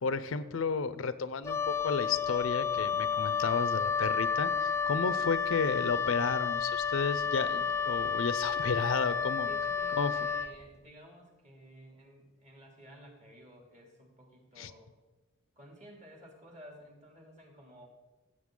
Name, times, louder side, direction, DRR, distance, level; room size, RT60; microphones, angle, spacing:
voice 1, 0.0-9.5 10.0-10.1 14.6-14.7, left 5 dB, 75° left, 14 dB, 0.6 m, -32 dB
Wind instrument woodwind instrument, 1.4-10.6, left 6 dB, 15° left, 0.4 m, -31 dB
voice 2, 9.5-14.9 15.6-17.9, right 1 dB, 35° right, 0 dB, 2.7 m, -53 dB
15.5 x 7.8 x 3.8 m, 1.2 s
head